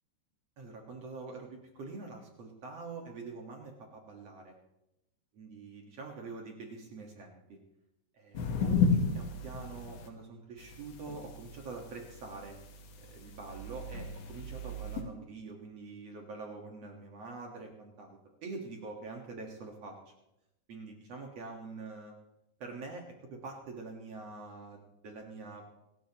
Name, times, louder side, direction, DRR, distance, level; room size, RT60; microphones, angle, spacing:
voice 1, 0.6-4.5 5.4-7.6 8.1-12.6 13.0-20.1 20.7-22.1 22.6-25.6, right 3 dB, 70° right, 1 dB, 1.5 m, -45 dB
sound 1, 8.4-10.1 10.6-15.0, left 4 dB, 70° left, 3.9 m, -33 dB
26.0 x 14.0 x 3.0 m, 0.87 s
omnidirectional pair, 5.4 m